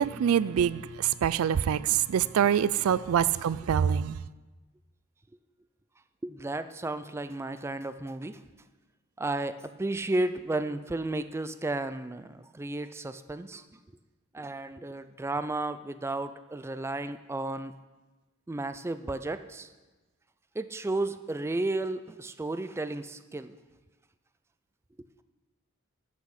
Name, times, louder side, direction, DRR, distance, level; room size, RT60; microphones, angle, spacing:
voice 1, 0.0-4.2, right 8 dB, 90° right, 0.3 m, -25 dB
voice 2, 6.2-8.4 9.2-13.6 14.3-17.7 18.5-19.7 20.5-23.6, right 2 dB, 10° right, 0.3 m, -33 dB
12.0 x 6.0 x 5.8 m
head